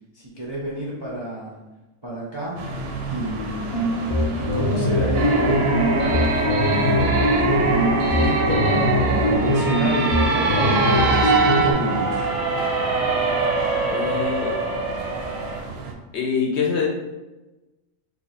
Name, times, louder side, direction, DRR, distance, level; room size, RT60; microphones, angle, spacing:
voice 1, 0.1-1.5 2.0-2.6 3.1-3.6 4.3-6.3 7.4-12.2, right 1 dB, 40° right, -6 dB, 0.4 m, -28 dB
sound 1, 2.6-15.9, right 2 dB, 60° right, 0.7 m, -34 dB
sound 2, 3.7-11.7, equal, 80° left, 0.3 m, -22 dB
sound 3, 5.1-15.6, right 3 dB, 85° right, 1.0 m, -23 dB
voice 2, 13.9-15.2 16.1-16.9, left 5 dB, 65° left, 0 dB, 0.8 m, -26 dB
2.8 x 2.4 x 4.1 m, 1.1 s
omnidirectional pair, 1.4 m